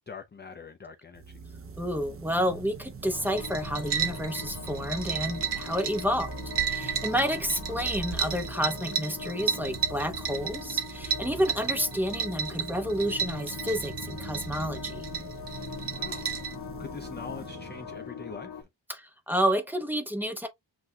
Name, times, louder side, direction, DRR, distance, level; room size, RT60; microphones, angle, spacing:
voice 1, 0.1-1.4 7.1-7.4 11.6-11.7 15.9-18.7, left 5 dB, 25° left, 0.4 m, -44 dB
sound 1, 1.1-18.7, right 5 dB, 30° right, 0.6 m, -43 dB
voice 2, 1.8-6.3 6.7-15.0 18.9-20.5, equal, 5° right, 0.9 m, -30 dB
sound 2, 3.1-18.6, left 8 dB, 70° left, 1.3 m, -43 dB
sound 3, 3.2-16.5, right 7 dB, 60° right, 0.9 m, -33 dB
7.8 x 2.6 x 2.3 m
wide cardioid pair, 145°, 45 cm